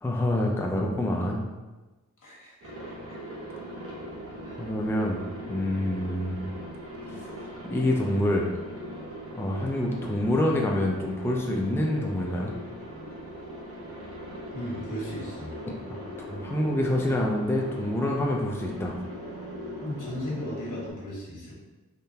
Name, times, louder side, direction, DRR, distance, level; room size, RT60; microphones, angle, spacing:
voice 1, 0.0-1.4 4.6-5.2 5.5-6.4 7.1-7.3 7.7-8.5 9.4-12.5 15.9-19.0, left 1 dB, 10° left, -1 dB, 0.5 m, -27 dB
voice 2, 2.2-3.2 4.4-4.6 14.5-15.6 19.8-21.5, equal, 75° left, -5 dB, 1.3 m, -36 dB
Aircraft, 2.6-20.9, equal, 50° right, 1.1 m, -40 dB
3.7 x 3.3 x 2.8 m, 1.2 s
wide cardioid pair, 95°, 31 cm